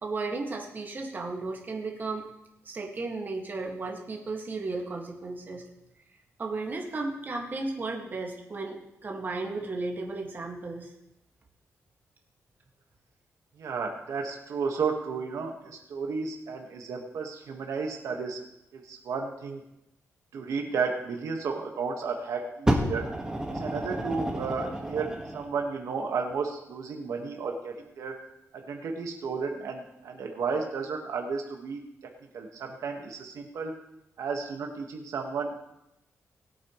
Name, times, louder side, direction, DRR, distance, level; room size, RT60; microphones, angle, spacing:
voice 1, 0.0-2.2 2.7-5.7 6.4-10.9, right 3 dB, 35° right, 0 dB, 2.0 m, -34 dB
voice 2, 13.6-18.4 18.7-19.6 20.3-23.0 23.5-25.1 25.3-28.1 28.7-31.8 32.3-33.7 34.2-35.6, right 5 dB, 85° right, 2 dB, 1.7 m, -33 dB
Fire, 22.7-25.5 26.3-26.4, right 1 dB, 15° right, 1.7 m, -30 dB
20.0 x 8.6 x 3.2 m, 0.85 s
wide cardioid pair, 135°, 5 cm